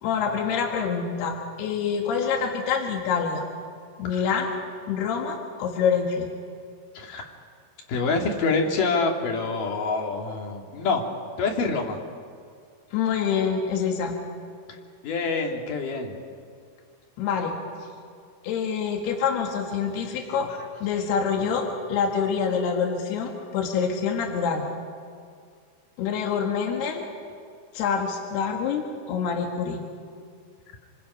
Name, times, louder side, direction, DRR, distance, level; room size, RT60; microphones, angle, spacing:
voice 1, 0.0-3.4 4.0-4.5 4.9-6.3 12.9-14.2 17.2-17.6 18.4-20.5 20.8-24.7 26.0-27.0 27.7-29.8, left 6 dB, 75° left, 1 dB, 3.9 m, -26 dB
voice 2, 7.0-7.3 7.9-11.0 11.4-12.0 15.0-16.1 20.2-20.3, left 4 dB, 55° left, 2 dB, 3.6 m, -26 dB
27.5 x 26.0 x 5.5 m, 2.2 s
omnidirectional pair, 4.7 m